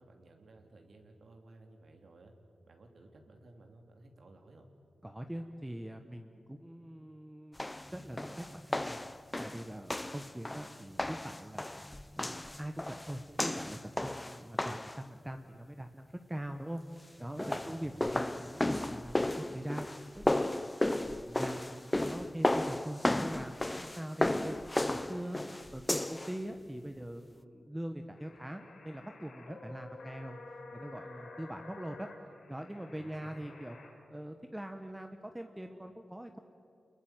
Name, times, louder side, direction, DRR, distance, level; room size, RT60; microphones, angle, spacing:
voice 1, 0.0-2.3 2.7-4.7 17.4-18.1 33.0-33.5, right 2 dB, 60° right, 3 dB, 3.0 m, -56 dB
voice 2, 5.0-7.6 7.9-9.1 9.4-11.6 12.2-19.9 20.1-20.7 21.0-25.4 25.7-30.4 30.7-32.1 32.5-33.8 34.1-36.4, right 1 dB, 10° right, 6 dB, 1.2 m, -43 dB
sound 1, 7.6-15.0 17.2-26.4, left 1 dB, 15° left, 0.7 m, -34 dB
sound 2, 28.2-33.9, left 3 dB, 75° left, 5.0 m, -51 dB
27.0 x 21.5 x 9.0 m, 2.6 s
wide cardioid pair, 90°, 0 cm